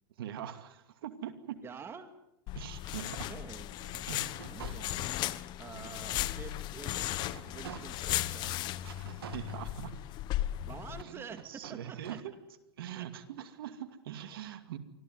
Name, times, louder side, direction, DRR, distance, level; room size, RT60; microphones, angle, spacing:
voice 1, 0.2-1.6 2.5-3.3 4.1-4.6 5.7-6.2 8.8-9.9 11.0-12.4 12.8-14.8, right 10 dB, 70° right, 9 dB, 2.5 m, -43 dB
voice 2, 1.6-2.1 3.3-3.7 4.4-5.0 5.6-7.1 7.5-8.6 10.6-12.0 13.0-13.1, right 6 dB, 20° right, 8 dB, 2.1 m, -47 dB
sound 1, 2.5-11.0, left 15 dB, 35° left, 1.1 m, -36 dB
sound 2, 3.8-5.4 5.9-6.0 6.5-8.2 8.8-10.3 10.9-12.2, right 8 dB, 90° right, 2.1 m, -50 dB
25.0 x 16.0 x 9.6 m, 0.88 s
hypercardioid pair, 135°, 12 cm